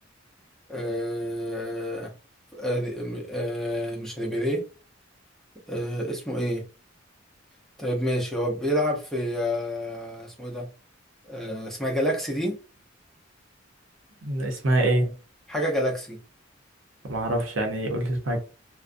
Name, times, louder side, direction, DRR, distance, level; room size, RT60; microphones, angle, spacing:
voice 1, 0.7-2.1 2.5-4.6 5.7-6.6 7.8-10.7 11.2-12.6 15.5-16.2, equal, ahead, 0.7 m, -28 dB
voice 2, 14.2-15.1 17.0-18.4, right 1 dB, 75° right, 0.7 m, -25 dB
2.4 x 2.1 x 2.5 m
head